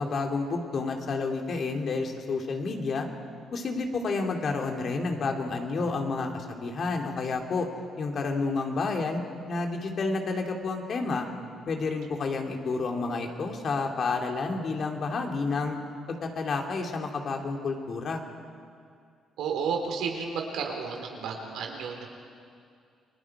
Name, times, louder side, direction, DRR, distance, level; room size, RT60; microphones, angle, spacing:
voice 1, 0.0-3.1 3.5-7.7 8.0-11.3 11.7-15.8 16.1-18.2, left 3 dB, 55° left, 2 dB, 2.7 m, -30 dB
voice 2, 19.4-22.1, right 5 dB, 90° right, 2 dB, 3.7 m, -32 dB
29.5 x 20.0 x 4.9 m, 2.3 s
cardioid pair, 90°, 0 cm